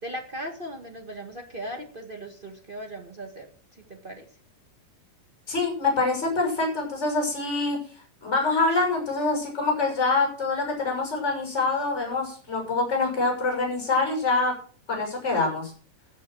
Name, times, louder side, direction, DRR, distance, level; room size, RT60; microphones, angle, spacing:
voice 1, 0.0-3.5 3.9-4.2, right 1 dB, 30° right, 3 dB, 0.9 m, -38 dB
voice 2, 5.5-7.8 8.2-14.5 14.9-15.7, left 3 dB, 20° left, 2 dB, 6.3 m, -25 dB
15.0 x 7.4 x 6.3 m, 0.42 s
omnidirectional pair, 3.9 m